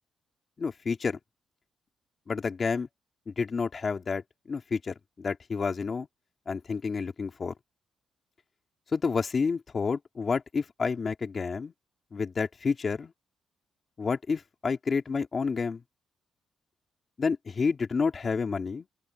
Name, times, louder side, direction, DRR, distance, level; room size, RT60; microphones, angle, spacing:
voice 1, 0.6-1.2 2.3-2.9 3.3-4.2 4.5-6.1 6.5-7.5 8.9-11.7 12.1-13.1 14.0-15.8 17.2-18.9, left 5 dB, 40° left, 2.7 m, -29 dB
open air
cardioid pair, 100°, 0 cm